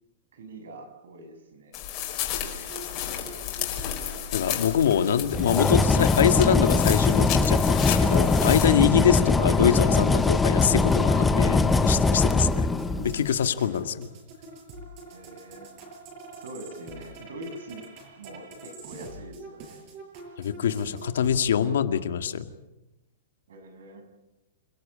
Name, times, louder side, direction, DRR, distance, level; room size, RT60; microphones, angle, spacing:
voice 1, 0.3-1.7 2.3-2.9 8.9-9.2 15.1-15.7 16.4-17.9 18.2-19.8 23.5-24.0, right 1 dB, 85° right, 7 dB, 6.9 m, -43 dB
sound 1, 1.7-8.7, left 10 dB, 30° left, 5.0 m, -33 dB
sound 2, 2.4-21.4, right 2 dB, 35° right, 6.6 m, -45 dB
voice 2, 4.3-14.1 20.4-22.5, left 8 dB, 85° left, 9 dB, 2.1 m, -24 dB
sound 3, 5.3-13.3, left 3 dB, 5° left, 0.8 m, -22 dB
28.0 x 18.0 x 8.7 m, 0.96 s
supercardioid pair, 170°, 0 cm